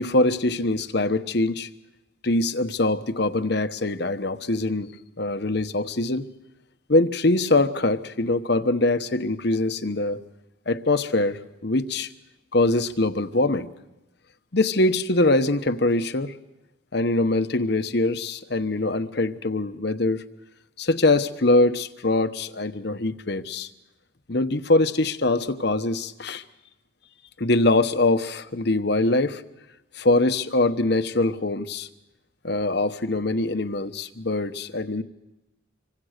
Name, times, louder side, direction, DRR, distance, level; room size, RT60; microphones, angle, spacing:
voice 1, 0.0-1.7 2.2-4.9 5.2-6.3 6.9-10.2 10.7-12.1 12.5-13.7 14.5-16.3 16.9-20.2 20.8-23.7 24.3-26.4 27.4-29.4 30.0-31.9 32.4-35.0, left 2 dB, 55° left, 11 dB, 1.0 m, -23 dB
26.5 x 24.0 x 6.6 m, 0.98 s
head